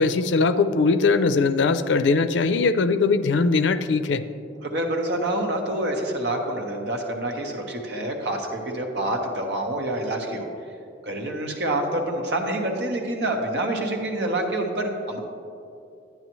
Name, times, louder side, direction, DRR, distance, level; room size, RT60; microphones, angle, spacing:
voice 1, 0.0-4.2, left 4 dB, 80° left, 12 dB, 0.4 m, -20 dB
voice 2, 4.6-10.5 11.0-15.2, right 1 dB, 65° right, 2 dB, 1.1 m, -27 dB
11.0 x 9.6 x 3.1 m, 2.6 s
head